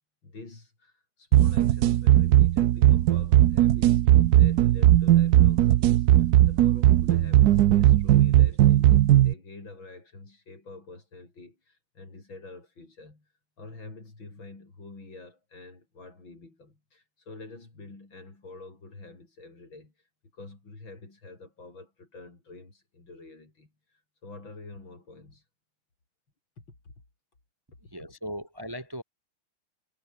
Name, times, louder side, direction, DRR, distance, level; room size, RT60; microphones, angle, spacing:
voice 1, 0.2-13.3 13.6-19.9 20.3-25.4 26.7-26.9 27.8-27.9, left 3 dB, 70° left, 6.7 m, -47 dB
sound 1, 1.3-9.3, right 13 dB, 65° right, 1.0 m, -18 dB
voice 2, 27.9-29.0, equal, 10° right, 1.5 m, -37 dB
omnidirectional pair, 2.2 m